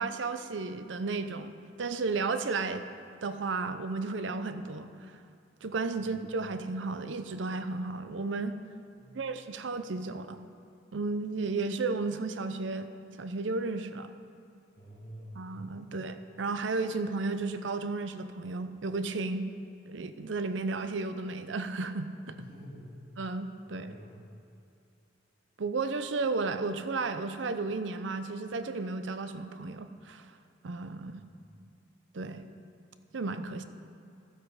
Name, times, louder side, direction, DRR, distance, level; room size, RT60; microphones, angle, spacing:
voice 1, 0.0-2.9 3.2-5.1 5.6-8.5 9.1-10.4 10.9-12.9 13.2-14.1 15.4-19.5 19.9-22.3 23.2-23.9 25.6-30.3 30.6-31.2 32.1-32.4 33.1-33.6, right 3 dB, 70° right, 10 dB, 0.6 m, -33 dB
voice 2, 14.8-15.3 15.8-15.9 22.3-22.9 23.7-24.2, equal, 55° left, -5 dB, 2.3 m, -48 dB
13.0 x 8.0 x 4.8 m, 2.5 s
head